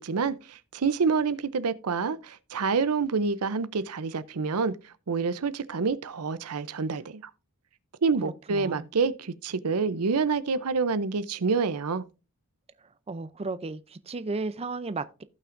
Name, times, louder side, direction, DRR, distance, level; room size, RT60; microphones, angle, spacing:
voice 1, 0.0-7.3 8.0-12.0, right 4 dB, 85° right, 0.6 m, -27 dB
voice 2, 8.5-8.9 13.1-15.2, right 3 dB, 25° right, 0.5 m, -34 dB
16.0 x 5.7 x 2.6 m
head